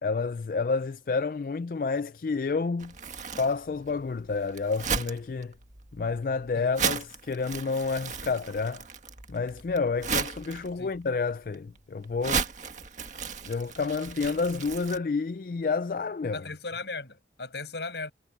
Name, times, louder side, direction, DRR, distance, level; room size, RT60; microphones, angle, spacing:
voice 1, 0.0-2.9 3.4-5.5 5.9-8.8 9.3-12.5 13.4-16.5, left 4 dB, 50° left, 0.4 m, -29 dB
Crumpling crinkling, 2.8-15.0, right 6 dB, 45° right, 1.9 m, -35 dB
voice 2, 16.3-18.1, left 3 dB, 75° left, 6.0 m, -37 dB
head